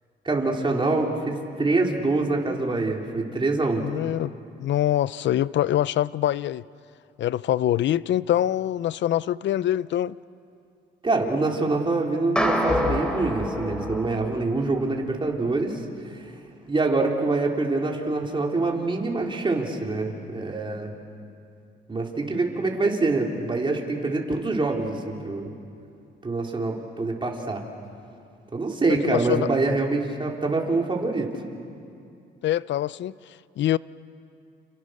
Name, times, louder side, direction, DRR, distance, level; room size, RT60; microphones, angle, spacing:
voice 1, 0.2-3.9 11.0-15.8 16.1-16.3 16.7-20.9 21.9-25.5 26.2-27.6 28.5-31.3, right 3 dB, 25° right, 4.1 m, -25 dB
voice 2, 3.8-4.3 4.6-6.6 7.2-10.2 29.0-29.5 32.4-33.8, left 12 dB, 65° left, 0.6 m, -24 dB
sound 1, 12.4-14.8, equal, 5° left, 3.5 m, -26 dB
30.0 x 28.5 x 6.6 m
cardioid pair, 90°, 20 cm